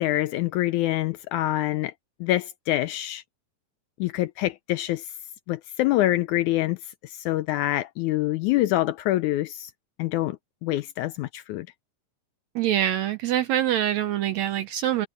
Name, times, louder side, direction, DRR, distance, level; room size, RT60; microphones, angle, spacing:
voice 1, 0.0-1.9 2.2-3.2 4.0-5.0 5.5-6.8 7.0-9.7 10.0-10.4 10.6-11.7, left 15 dB, 80° left, 1.8 m, -25 dB
voice 2, 12.5-15.1, right 11 dB, 75° right, 1.7 m, -24 dB
omnidirectional pair, 3.9 m